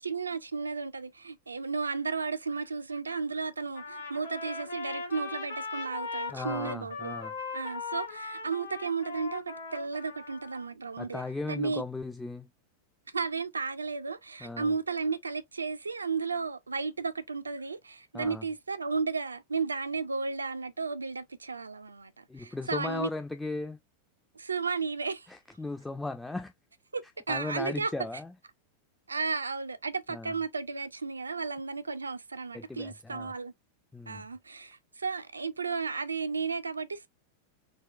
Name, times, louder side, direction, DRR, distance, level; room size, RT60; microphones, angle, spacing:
voice 1, 0.0-7.1 7.5-11.8 13.1-23.1 24.4-25.3 26.9-27.9 29.1-33.5 34.1-37.1, right 4 dB, 75° right, 0.3 m, -34 dB
Trumpet, 3.7-10.7, left 4 dB, 65° left, 1.2 m, -39 dB
voice 2, 6.3-7.3 11.0-12.5 14.4-14.7 18.1-18.4 22.3-23.8 25.3-26.5 27.3-28.3 30.1-30.3 32.5-33.3 33.9-34.3, left 3 dB, 10° left, 0.3 m, -37 dB
4.0 x 2.1 x 2.3 m
figure-of-eight pair, 90°, 0 cm